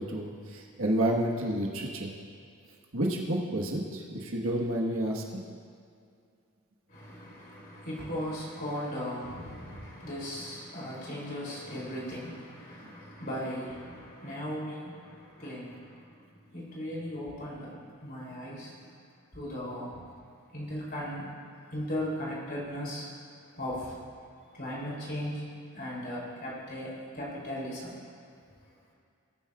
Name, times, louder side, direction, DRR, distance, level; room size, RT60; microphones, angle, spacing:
voice 1, 0.0-2.1 2.9-5.2, right 1 dB, 65° right, -1 dB, 1.4 m, -30 dB
voice 2, 6.9-19.0 19.3-20.1 20.5-21.2 21.7-23.1 23.6-24.0 24.5-25.4 25.7-28.0, equal, 45° left, -6 dB, 3.1 m, -37 dB
20.0 x 9.7 x 2.4 m, 2.3 s
head